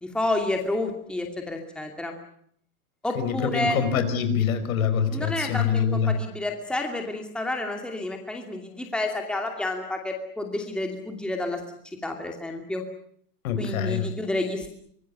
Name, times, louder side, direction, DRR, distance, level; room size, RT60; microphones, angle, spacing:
voice 1, 0.0-2.1 3.0-3.8 5.1-11.6 12.0-12.8 13.6-14.7, left 2 dB, ahead, 3 dB, 2.6 m, -30 dB
voice 2, 3.2-6.2 13.4-14.1, left 7 dB, 60° left, 10 dB, 5.0 m, -25 dB
25.0 x 20.0 x 8.5 m, 0.64 s
hypercardioid pair, 145°, 47 cm